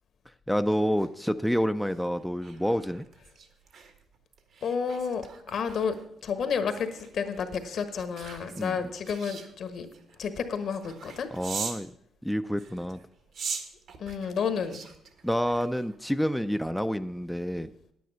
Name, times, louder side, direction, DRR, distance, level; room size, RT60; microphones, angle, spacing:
voice 1, 0.5-3.0 8.6-8.9 11.3-11.9 12.2-13.0 15.2-17.7, equal, ahead, 9 dB, 0.4 m, -28 dB
sound 1, 0.7-11.9 12.5-16.1 16.5-16.8, right 5 dB, 70° right, 1.4 m, -43 dB
voice 2, 4.6-6.0 6.2-9.9 10.2-11.3 14.0-14.8, left 6 dB, 65° left, 9 dB, 1.3 m, -31 dB
9.3 x 9.2 x 5.6 m, 0.72 s
cardioid pair, 90°, 0 cm